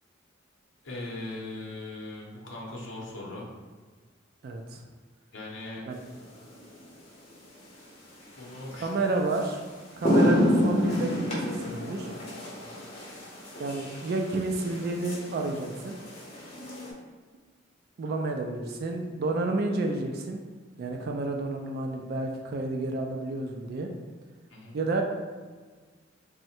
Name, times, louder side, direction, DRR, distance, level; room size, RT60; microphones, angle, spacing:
voice 1, 0.8-3.4 5.3-5.8 8.4-8.9 9.9-10.1 12.6-12.8 24.5-24.8, left 2 dB, 70° left, -4 dB, 0.7 m, -39 dB
voice 2, 4.4-4.8 5.9-6.0 8.7-9.6 10.0-12.1 13.6-16.0 18.0-20.4 20.8-23.9 24.7-25.0, right 2 dB, 50° right, 3 dB, 0.3 m, -30 dB
sound 1, 6.3-6.6 8.7-8.8 9.3-9.5 9.8-16.9, equal, 30° left, 0.8 m, -29 dB
3.5 x 2.1 x 4.2 m, 1.5 s
head